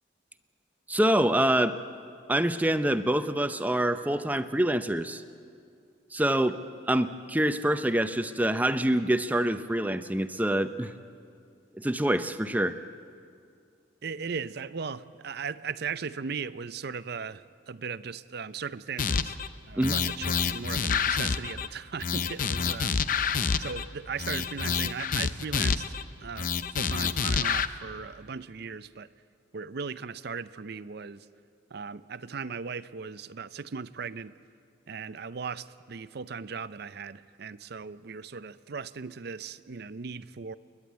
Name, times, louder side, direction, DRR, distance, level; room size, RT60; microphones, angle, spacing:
voice 1, 0.9-1.8 2.3-5.2 6.1-6.6 6.9-10.9 11.7-12.8 19.8-19.9, right 1 dB, 10° right, 10 dB, 0.6 m, -26 dB
voice 2, 14.0-19.4 19.7-23.3 23.6-29.1 29.5-31.3 31.7-34.4 34.9-40.6, right 5 dB, 55° right, 15 dB, 0.5 m, -38 dB
sound 1, 19.0-19.5 19.8-21.7 22.0-23.8 24.2-26.0 26.4-27.7, left 6 dB, 45° left, 0.6 m, -28 dB
29.5 x 11.0 x 9.3 m, 2.3 s
head